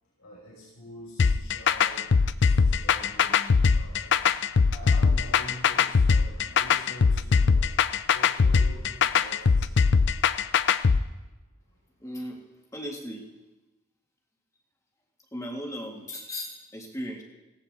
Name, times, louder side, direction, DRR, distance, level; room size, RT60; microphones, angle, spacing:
voice 1, 0.2-2.1 2.4-10.2, equal, 85° left, -6 dB, 5.2 m, -46 dB
sound 1, 1.2-11.0, left 5 dB, 55° left, 0.5 m, -21 dB
voice 2, 12.0-12.4 12.7-13.3 15.3-17.2, equal, 15° left, 1 dB, 2.0 m, -36 dB
17.5 x 17.5 x 3.7 m, 1.1 s
head